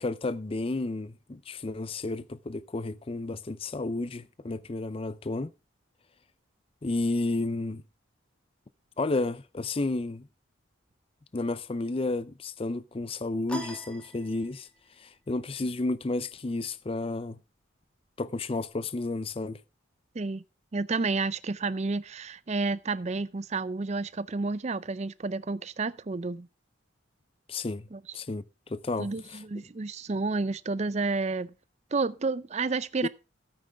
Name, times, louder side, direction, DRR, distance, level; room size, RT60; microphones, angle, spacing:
voice 1, 0.0-5.5 6.8-7.8 9.0-10.3 11.3-14.7 15.0-17.4 18.2-19.6 27.5-27.9 28.1-29.4 33.0-33.1, left 2 dB, 30° left, 0.5 m, -32 dB
sound 1, 13.5-14.9, equal, 5° left, 1.7 m, -40 dB
voice 2, 20.7-26.5 27.9-28.0 29.0-31.5 31.9-33.1, right 3 dB, 35° right, 0.5 m, -30 dB
13.0 x 9.0 x 3.5 m
head